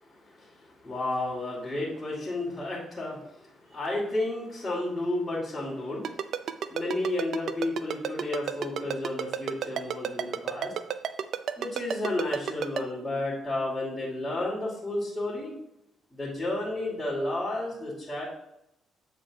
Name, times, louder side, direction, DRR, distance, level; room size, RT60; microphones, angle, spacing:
voice 1, 0.3-6.2 6.7-10.7 11.6-15.5 16.1-18.2, left 2 dB, 15° left, -9 dB, 2.6 m, -32 dB
Ringtone, 6.0-12.8, right 8 dB, 65° right, 0.5 m, -30 dB
8.2 x 4.3 x 4.8 m, 0.84 s
cardioid pair, 90°, 0 cm